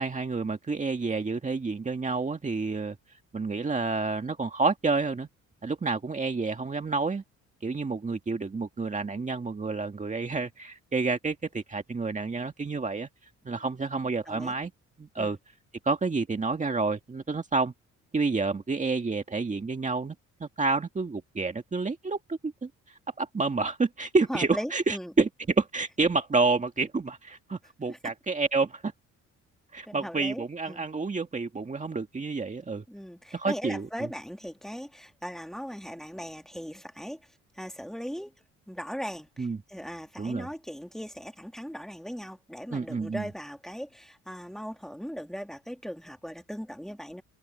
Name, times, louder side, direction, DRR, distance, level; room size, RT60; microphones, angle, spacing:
voice 1, 0.0-3.0 3.3-5.3 5.6-7.2 7.6-13.1 13.5-14.7 15.0-15.4 15.8-17.7 18.1-20.2 20.4-22.7 23.2-28.9 29.7-32.8 33.3-33.9 39.4-39.6 40.2-40.5 42.7-43.3, right 4 dB, 25° right, 1.9 m, -29 dB
voice 2, 24.3-25.1 27.9-28.0 29.9-30.9 32.9-37.2 37.5-38.3 38.7-47.2, equal, ahead, 2.9 m, -38 dB
cardioid pair, 90°, 30 cm